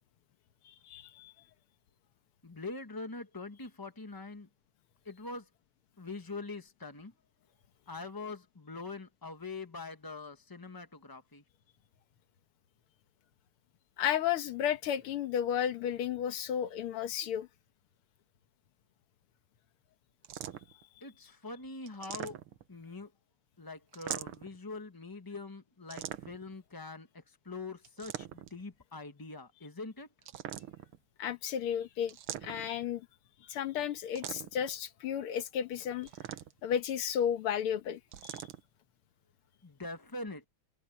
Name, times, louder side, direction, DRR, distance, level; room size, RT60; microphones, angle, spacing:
voice 1, 0.6-1.3 14.0-17.5 31.2-32.2 32.4-33.1 33.4-36.1 36.6-38.5, left 9 dB, 85° left, 2.0 m, -33 dB
voice 2, 2.4-4.5 5.1-5.4 6.0-7.1 7.9-11.4 21.0-22.4 22.7-23.1 23.6-27.1 27.5-30.1 39.6-40.4, left 3 dB, 30° left, 0.4 m, -43 dB
sound 1, 20.2-20.8 21.9-22.8 23.9-24.6 25.9-26.5 27.8-28.6 30.2-31.0 32.1-32.9 34.2-34.7 36.0-36.8 38.1-38.6, right 11 dB, 85° right, 1.9 m, -42 dB
omnidirectional pair, 2.4 m